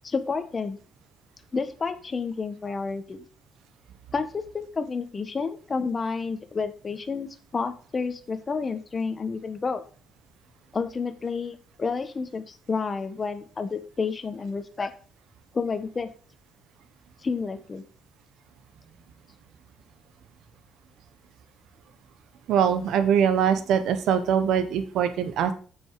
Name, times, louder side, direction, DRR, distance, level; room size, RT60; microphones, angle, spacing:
voice 1, 0.0-0.8 1.5-3.2 4.1-9.8 10.7-14.9 15.5-16.1 17.2-17.8, left 4 dB, 35° left, 9 dB, 1.3 m, -30 dB
voice 2, 22.5-25.5, right 8 dB, 80° right, 9 dB, 1.2 m, -22 dB
7.7 x 6.3 x 4.9 m, 0.39 s
cardioid pair, 90°, 0 cm